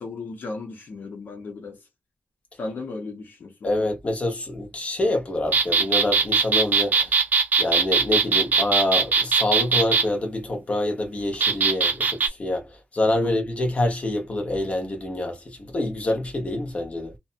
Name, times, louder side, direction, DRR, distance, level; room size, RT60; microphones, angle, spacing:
voice 1, 0.0-1.8 2.6-3.9 6.9-7.0 13.2-13.3, left 3 dB, 70° left, 0.8 m, -36 dB
voice 2, 3.6-7.1 7.6-12.7 12.9-17.1, left 1 dB, 35° left, 0.9 m, -26 dB
sound 1, 5.5-10.1 11.4-12.3, right 5 dB, 55° right, 0.5 m, -20 dB
2.6 x 2.2 x 2.5 m
wide cardioid pair, 115°, 3 cm